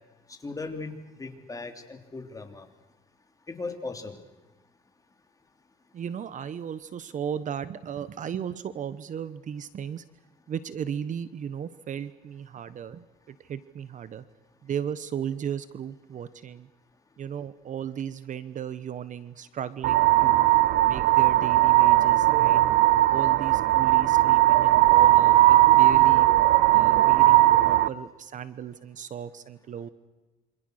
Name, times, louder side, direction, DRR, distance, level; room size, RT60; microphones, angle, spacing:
voice 1, 0.3-0.9 1.2-2.7 3.5-4.2, left 3 dB, 20° left, 5 dB, 3.3 m, -37 dB
voice 2, 5.9-10.0 10.5-14.2 14.6-16.7 17.2-20.4 20.8-22.6 23.1-26.3 26.7-29.9, right 8 dB, 50° right, 14 dB, 1.2 m, -35 dB
sound 1, 19.8-27.9, right 16 dB, 75° right, 0.8 m, -18 dB
27.5 x 26.5 x 6.6 m, 1.1 s
cardioid pair, 110°, 17 cm